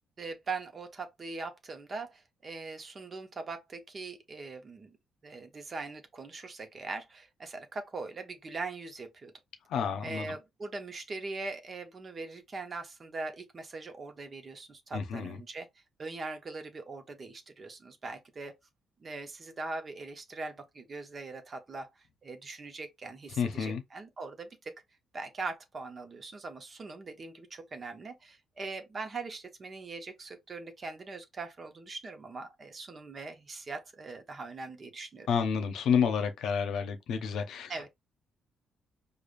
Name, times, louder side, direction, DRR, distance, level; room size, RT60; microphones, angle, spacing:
voice 1, 0.2-5.0 5.2-9.3 10.0-15.7 16.0-18.6 19.0-21.9 22.2-24.8 25.1-35.3 37.7-37.9, right 3 dB, 40° right, 0.9 m, -41 dB
voice 2, 9.7-10.3 14.9-15.4 23.4-23.8 35.3-37.9, left 7 dB, 75° left, 0.7 m, -30 dB
4.9 x 2.4 x 2.6 m
cardioid pair, 90°, 0 cm